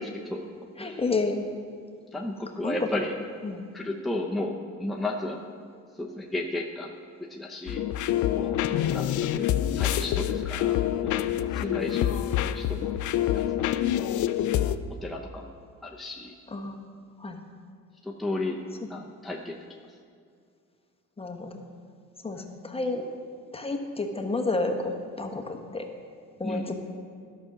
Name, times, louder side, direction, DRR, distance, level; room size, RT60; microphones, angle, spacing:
voice 1, 0.0-0.4 0.8-1.0 2.1-3.1 3.7-5.5 5.9-6.9 7.3-7.8 8.3-8.6 8.9-9.5 9.7-11.2 11.5-12.9 13.3-13.7 15.0-15.5 15.8-16.4 18.0-18.6 18.9-19.6 26.4-26.7, left 2 dB, ahead, -1 dB, 0.8 m, -34 dB
voice 2, 0.8-1.4 2.6-2.9 3.4-3.7 8.7-8.9 11.6-12.0 16.5-16.8 17.2-17.4 21.2-21.6 22.2-23.0 23.5-25.9 26.4-26.7, left 3 dB, 20° left, 3 dB, 1.1 m, -30 dB
sound 1, 7.7-14.8, left 11 dB, 75° left, 0.5 m, -26 dB
11.5 x 6.1 x 5.9 m, 2.2 s
cardioid pair, 90°, 30 cm